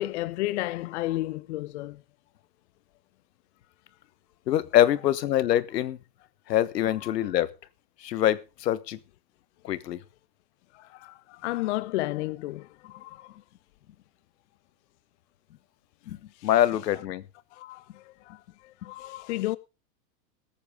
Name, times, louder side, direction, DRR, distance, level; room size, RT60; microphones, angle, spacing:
voice 1, 0.0-2.0 7.0-7.1 10.7-13.4 16.4-16.5 17.5-19.6, left 17 dB, 45° left, 0.6 m, -33 dB
voice 2, 4.5-6.0 6.5-7.5 8.0-9.0 9.6-10.0 16.1-17.2, left 12 dB, 75° left, 1.4 m, -24 dB
20.0 x 8.9 x 3.7 m
hypercardioid pair, 140°, 49 cm